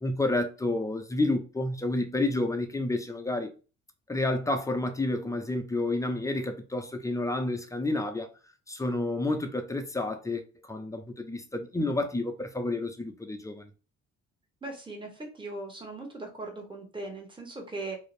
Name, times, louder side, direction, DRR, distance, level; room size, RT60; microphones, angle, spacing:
voice 1, 0.0-3.5 4.1-8.3 8.7-13.7, left 2 dB, 10° left, 0.4 m, -30 dB
voice 2, 14.6-18.0, right 2 dB, 15° right, 0.9 m, -39 dB
2.5 x 2.0 x 3.0 m
cardioid pair, 90°, 30 cm